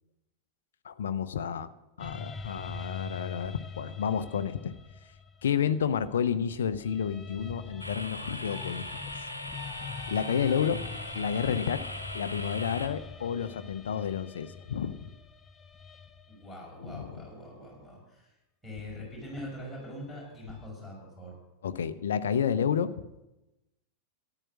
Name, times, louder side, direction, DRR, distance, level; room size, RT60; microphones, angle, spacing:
voice 1, 0.8-1.7 2.0-4.7 5.4-8.8 9.1-9.3 10.1-10.8 11.1-11.9 12.1-15.0 16.8-17.1 21.6-23.1, left 8 dB, 65° left, 11 dB, 0.6 m, -30 dB
sound 1, 2.0-6.2 6.7-16.8 18.8-20.7, left 5 dB, 20° left, 0.8 m, -43 dB
sound 2, 7.8-12.9, left 1 dB, 85° left, 1.0 m, -40 dB
voice 2, 16.3-18.3 18.6-21.3, left 1 dB, ahead, -4 dB, 5.7 m, -43 dB
13.5 x 9.8 x 6.2 m, 0.96 s
figure-of-eight pair, 90°, 0 cm